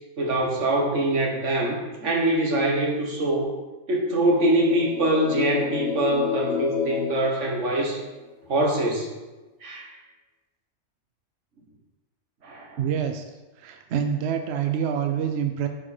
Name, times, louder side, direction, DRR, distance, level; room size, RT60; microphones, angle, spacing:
voice 1, 0.2-3.5 3.9-8.0 8.5-9.1 9.6-9.9 12.4-12.7, right 1 dB, 90° right, -1 dB, 1.8 m, -23 dB
sound 1, 4.4-8.2, left 7 dB, 10° left, 2.3 m, -30 dB
voice 2, 12.8-13.2 13.6-15.7, right 8 dB, 70° right, 6 dB, 0.8 m, -26 dB
8.8 x 5.0 x 4.3 m, 1.1 s
omnidirectional pair, 1.2 m